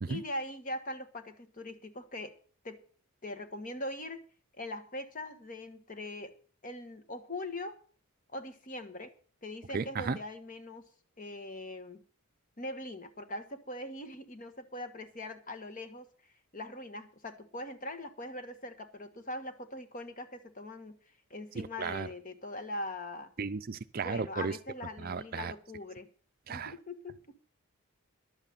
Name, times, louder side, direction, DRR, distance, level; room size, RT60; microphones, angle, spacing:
voice 1, 0.0-2.3 2.6-2.8 3.2-4.2 4.6-6.3 6.6-7.8 8.3-9.1 9.4-10.9 11.2-12.0 12.6-16.1 16.5-21.0 21.3-23.3 23.9-26.1 26.5-27.4, left 1 dB, 35° left, 8 dB, 1.3 m, -41 dB
voice 2, 9.7-10.2 21.6-22.1 23.4-24.5 25.0-25.5 26.5-26.7, right 5 dB, 40° right, 12 dB, 0.5 m, -34 dB
11.5 x 8.2 x 6.9 m, 0.43 s
head